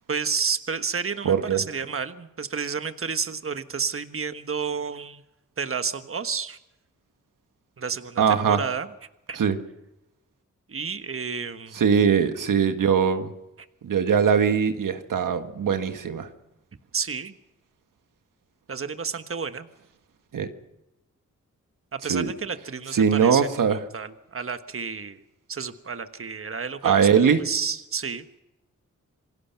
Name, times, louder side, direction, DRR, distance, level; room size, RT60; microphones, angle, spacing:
voice 1, 0.1-5.2 5.6-6.6 7.8-8.9 9.3-9.4 10.7-11.8 16.9-17.3 18.7-19.7 21.9-25.2 25.5-27.1 27.4-28.2, right 5 dB, 45° right, 9 dB, 1.4 m, -31 dB
voice 2, 1.2-1.6 8.2-8.6 9.3-9.6 11.7-13.3 13.8-16.3 20.3-20.5 22.0-22.3 22.9-23.8 26.8-27.4, right 7 dB, 80° right, 7 dB, 1.6 m, -21 dB
27.5 x 18.0 x 5.8 m, 0.92 s
cardioid pair, 50°, 32 cm